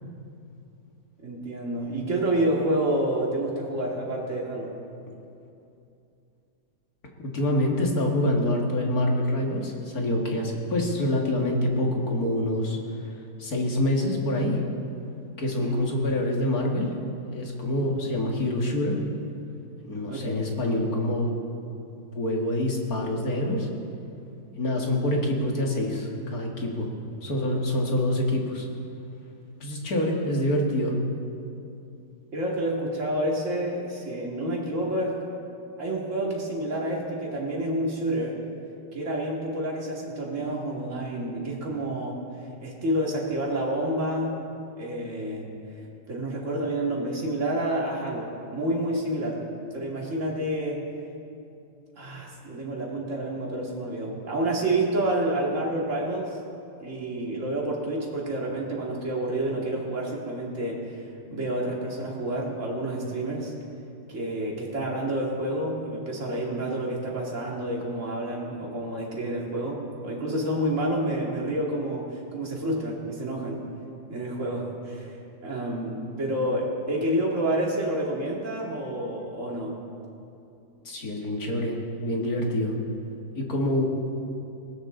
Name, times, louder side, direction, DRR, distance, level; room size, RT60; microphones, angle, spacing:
voice 1, 1.2-4.7 15.6-15.8 20.1-20.3 32.3-35.1 35.8-38.4 38.9-42.2 42.6-44.4 44.8-45.5 46.1-49.4 49.7-50.8 52.0-56.3 56.8-61.0 61.3-63.5 64.1-73.6 74.1-75.2 75.4-79.7, right 1 dB, 45° right, -3 dB, 2.7 m, -29 dB
voice 2, 7.2-14.6 15.4-19.0 19.8-21.4 22.1-23.7 24.6-26.9 27.2-28.7 29.6-31.0 80.8-82.8 83.4-83.9, left 1 dB, 55° left, 0 dB, 2.4 m, -26 dB
20.0 x 17.5 x 3.9 m, 2.6 s
omnidirectional pair, 1.9 m